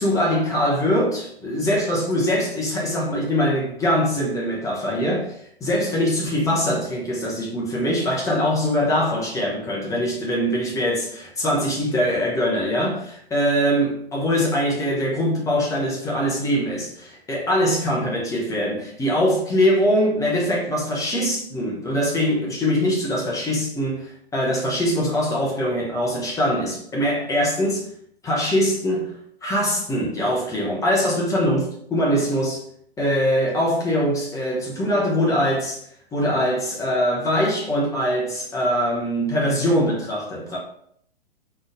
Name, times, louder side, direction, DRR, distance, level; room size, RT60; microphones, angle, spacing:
voice 1, 0.0-5.3 5.6-27.9 28.2-29.1 29.4-32.6 33.0-35.8 36.1-40.6, equal, 10° left, 1.1 m, -22 dB
3.9 x 3.5 x 3.9 m
figure-of-eight pair, 115°, 32 cm